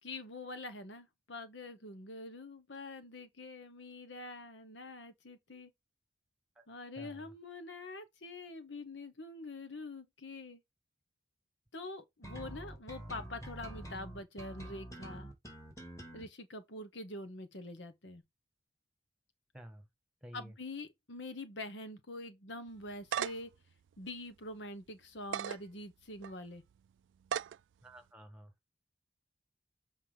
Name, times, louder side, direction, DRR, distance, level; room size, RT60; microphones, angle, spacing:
voice 1, 0.0-5.7 6.7-10.6 11.7-15.3 16.1-18.2 20.3-23.5 24.0-26.6, left 2 dB, 75° left, 1.3 m, -45 dB
voice 2, 7.0-7.3 19.5-19.9 20.2-20.5 27.8-28.5, equal, 5° right, 1.6 m, -51 dB
sound 1, 12.2-16.2, right 1 dB, 15° left, 2.8 m, -46 dB
sound 2, 22.7-23.5 24.1-24.2 25.2-25.6 26.2-26.3 27.2-27.6, right 8 dB, 85° right, 0.3 m, -35 dB
7.6 x 3.9 x 3.9 m
head